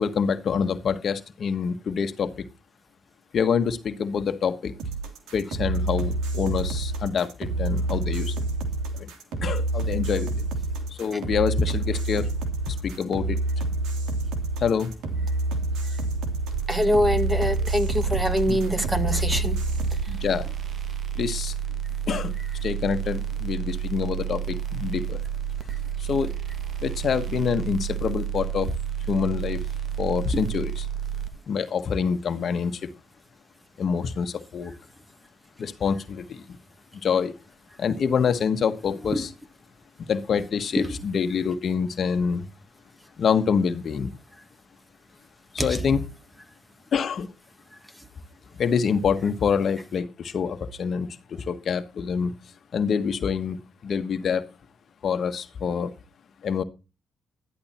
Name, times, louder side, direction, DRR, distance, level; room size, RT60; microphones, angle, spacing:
voice 1, 0.0-2.5 3.3-4.7 5.3-8.3 8.9-9.1 9.4-10.3 10.9-12.3 12.7-13.4 14.6-14.9 18.5-18.9 20.1-20.5 21.1-21.5 22.1-22.3 22.6-25.2 26.0-26.4 26.8-28.8 29.1-29.6 30.0-30.9 31.5-32.9 33.8-34.7 35.6-36.4 37.0-37.3 37.8-39.3 40.1-42.5 43.2-44.1 45.5-46.0 46.9-47.3 48.6-52.3 52.7-54.4 55.0-55.9 56.4-56.6, left 6 dB, 55° left, 9 dB, 1.4 m, -26 dB
sound 1, 4.8-20.0, right 2 dB, 85° right, 2.9 m, -28 dB
sound 2, 16.5-31.3, right 10 dB, 55° right, 1.7 m, -30 dB
voice 2, 16.7-19.6 39.1-39.2, equal, 10° right, 9 dB, 1.9 m, -24 dB
12.5 x 11.0 x 4.4 m, 0.30 s
cardioid pair, 90°, 0 cm